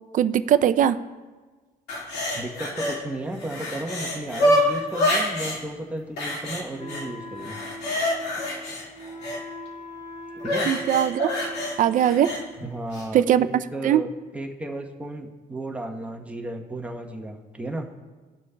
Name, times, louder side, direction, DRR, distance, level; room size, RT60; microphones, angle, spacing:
voice 1, 0.1-1.0 10.7-11.3 11.8-12.3 13.1-13.5 13.8-14.0, right 10 dB, 50° right, 12 dB, 0.4 m, -20 dB
sound 1, 1.9-3.0 3.3-5.6 6.2-7.1 7.4-9.4 10.4-12.4 12.9-13.1, left 1 dB, 85° left, 1.9 m, -26 dB
voice 2, 2.3-7.6 10.4-10.7 12.6-14.1 14.3-17.9, right 1 dB, 5° right, 1 dB, 0.9 m, -34 dB
Wind instrument woodwind instrument, 6.8-12.7, left 1 dB, 60° left, 3.0 m, -40 dB
17.5 x 6.2 x 2.2 m, 1.3 s
cardioid pair, 110°, 17 cm